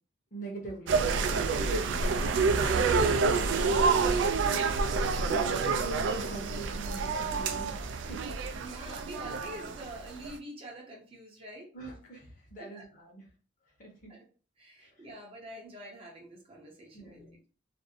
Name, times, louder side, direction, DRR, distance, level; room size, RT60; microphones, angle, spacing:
voice 1, 0.3-1.0 5.1-8.9 11.7-13.2 13.8-14.1 14.8-14.9 16.9-17.5, right 2 dB, 45° left, 0 dB, 0.9 m, -44 dB
sound 1, 0.9-10.3, right 4 dB, 75° right, 0.3 m, -28 dB
voice 2, 1.9-2.3 8.6-11.7 12.6-12.8 14.1-14.2 14.6-17.3, right 1 dB, 30° right, 0 dB, 0.6 m, -46 dB
2.6 x 2.0 x 2.6 m, 0.38 s
head